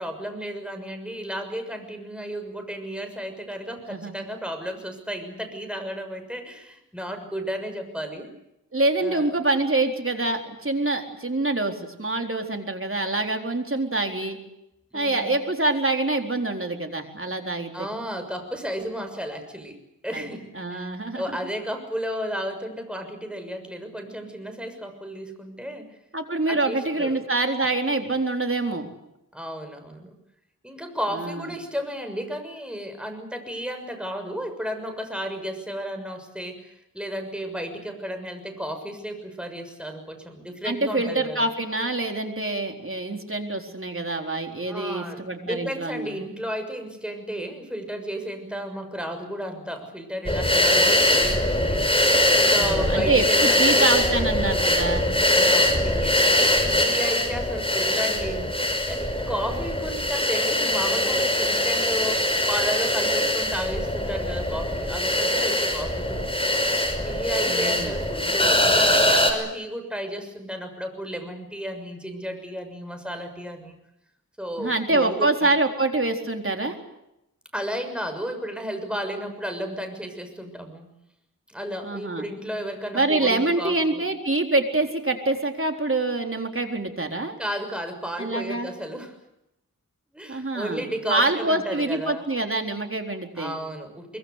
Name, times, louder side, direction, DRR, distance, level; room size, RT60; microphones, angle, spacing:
voice 1, 0.0-8.3 9.0-9.3 14.9-15.3 17.7-19.8 20.0-20.9 21.1-25.9 26.5-27.2 29.3-30.1 30.6-41.5 44.7-52.0 52.3-54.1 55.3-58.6 58.9-66.5 67.0-73.8 74.4-75.5 77.5-80.9 81.5-84.0 87.4-89.2 90.1-92.2 93.4-94.2, equal, 5° right, 6 dB, 6.5 m, -33 dB
voice 2, 8.7-14.4 14.9-17.9 20.1-20.2 20.5-21.4 26.1-28.9 31.1-31.5 40.6-46.2 52.6-55.1 67.4-67.9 74.6-76.8 81.8-82.3 82.9-87.4 88.2-88.7 90.3-93.6, right 2 dB, 40° right, 4 dB, 4.1 m, -25 dB
sound 1, 50.3-69.3, left 1 dB, 15° left, 5.9 m, -22 dB
24.0 x 23.5 x 8.3 m, 0.86 s
wide cardioid pair, 50°, 33 cm